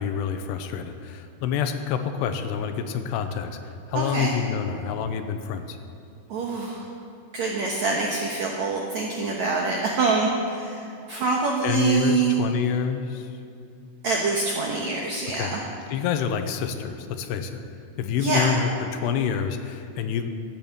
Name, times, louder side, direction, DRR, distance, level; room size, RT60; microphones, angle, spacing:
voice 1, 0.0-5.8 11.6-13.4 15.3-15.5 15.9-17.6 18.0-20.3, left 7 dB, 85° left, 8 dB, 2.8 m, -27 dB
voice 2, 3.9-4.3 6.3-6.8 7.3-12.3 14.0-15.6 18.2-18.5, right 4 dB, 80° right, -1 dB, 1.6 m, -25 dB
12.5 x 9.0 x 8.0 m, 2.6 s
omnidirectional pair, 4.9 m